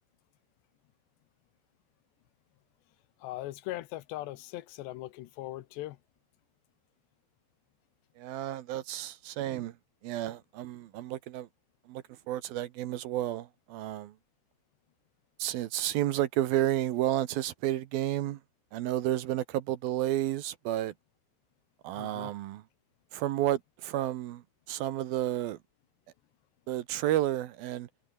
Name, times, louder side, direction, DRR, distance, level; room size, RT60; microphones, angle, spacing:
voice 1, 3.2-6.0 22.0-22.3, left 16 dB, 85° left, 3.3 m, -40 dB
voice 2, 8.2-9.7 10.0-11.5 11.9-14.1 15.4-18.4 18.7-20.9 21.8-22.6 23.1-25.6 26.7-27.9, right 13 dB, 70° right, 2.6 m, -31 dB
omnidirectional pair, 4.9 m